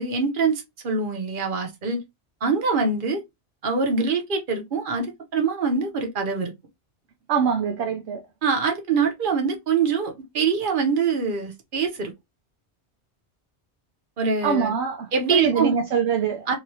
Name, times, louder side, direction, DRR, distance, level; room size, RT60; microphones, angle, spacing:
voice 1, 0.0-2.0 2.4-3.2 3.6-5.1 5.3-6.5 8.4-12.1 14.2-14.8 15.1-15.7 16.5-16.6, right 5 dB, 50° right, 1.0 m, -24 dB
voice 2, 7.3-8.2 14.4-16.6, right 6 dB, 75° right, 0.9 m, -24 dB
3.0 x 2.7 x 2.7 m
omnidirectional pair, 1.1 m